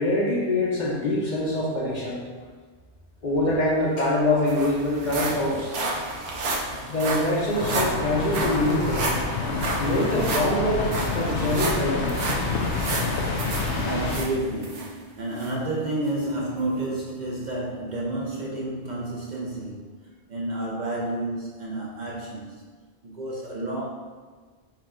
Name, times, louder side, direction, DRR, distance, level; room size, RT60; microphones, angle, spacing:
voice 1, 0.0-2.2 3.2-5.7 6.9-9.1 9.8-10.9 11.1-12.2 12.5-12.6 13.7-13.9, left 1 dB, 50° left, -4 dB, 0.7 m, -24 dB
sound 1, 3.7-3.8 4.0-14.9 15.4-15.5 16.1-16.2, right 2 dB, 85° right, 1.1 m, -31 dB
sound 2, 7.5-14.2, left 3 dB, 80° left, 1.0 m, -28 dB
voice 2, 13.8-19.9 20.3-22.6 23.0-23.8, right 1 dB, 45° right, -4 dB, 0.7 m, -30 dB
4.7 x 2.3 x 4.8 m, 1.4 s
omnidirectional pair, 1.2 m